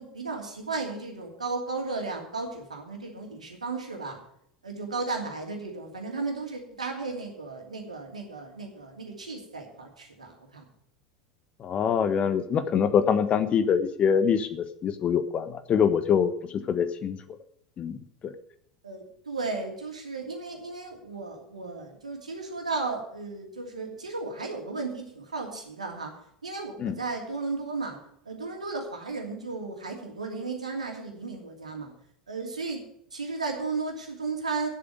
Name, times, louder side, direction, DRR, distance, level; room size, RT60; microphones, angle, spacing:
voice 1, 0.0-4.2 4.6-10.6 18.8-26.1 26.4-28.0 28.2-31.9 32.3-32.8 33.1-34.7, right 3 dB, 80° right, 2 dB, 2.7 m, -34 dB
voice 2, 11.6-17.2 17.8-18.0 18.2-18.3 26.8-26.9, left 7 dB, 35° left, 11 dB, 1.2 m, -24 dB
9.8 x 7.7 x 9.3 m, 0.69 s
figure-of-eight pair, 80°, 4 cm